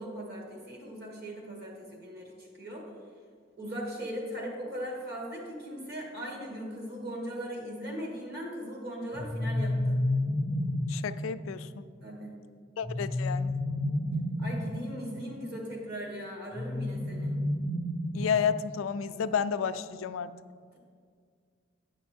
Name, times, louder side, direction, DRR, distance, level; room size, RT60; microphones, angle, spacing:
voice 1, 0.0-2.9 3.6-10.0 12.0-12.3 14.4-17.3, equal, 55° right, -1 dB, 2.0 m, -39 dB
sound 1, 9.1-11.0 12.8-14.7 16.5-18.5, left 1 dB, 15° left, 0.4 m, -30 dB
voice 2, 10.9-11.9 12.8-13.5 18.1-20.3, left 7 dB, 90° left, 12 dB, 0.4 m, -31 dB
10.0 x 6.0 x 4.4 m, 2.1 s
head